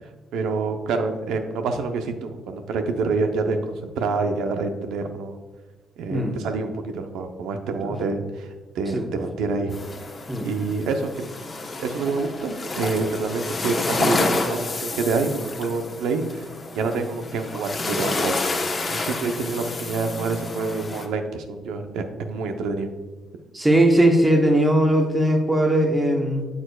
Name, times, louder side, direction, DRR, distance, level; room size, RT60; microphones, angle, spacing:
voice 1, 0.3-5.4 6.0-8.5 8.7-9.7 10.4-11.3 11.8-16.5 16.7-18.4 18.9-22.9, right 4 dB, 90° right, 6 dB, 0.7 m, -27 dB
sound 1, 9.7-21.1, left 3 dB, 35° left, 1.0 m, -29 dB
voice 2, 23.5-26.4, right 1 dB, 15° right, 2 dB, 1.0 m, -19 dB
8.6 x 6.9 x 2.3 m, 1.3 s
cardioid pair, 90°, 0 cm